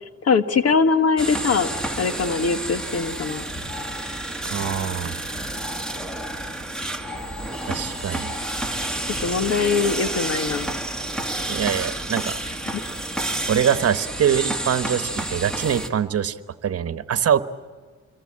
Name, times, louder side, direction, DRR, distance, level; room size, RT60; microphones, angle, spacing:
voice 1, 0.2-1.7 2.0-3.4 9.2-10.7, left 5 dB, 55° left, 10 dB, 1.6 m, -21 dB
sound 1, 1.2-15.9, right 1 dB, ahead, 2.3 m, -30 dB
voice 2, 4.4-5.2 7.7-8.3 11.5-12.4 13.5-16.4 16.6-17.4, right 9 dB, 50° right, 11 dB, 1.4 m, -23 dB
27.0 x 23.0 x 8.7 m, 1.5 s
cardioid pair, 90°, 30 cm